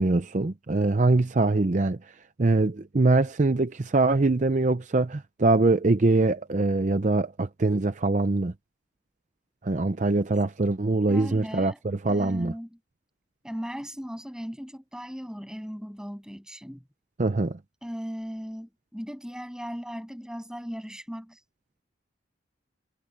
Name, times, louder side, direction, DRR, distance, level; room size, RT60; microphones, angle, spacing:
voice 1, 0.0-2.0 2.4-8.5 9.6-12.5 17.2-17.6, right 2 dB, 40° right, 0.6 m, -23 dB
voice 2, 11.1-11.8 12.1-12.8 13.4-16.8 17.8-21.4, equal, 5° right, 7.9 m, -37 dB
head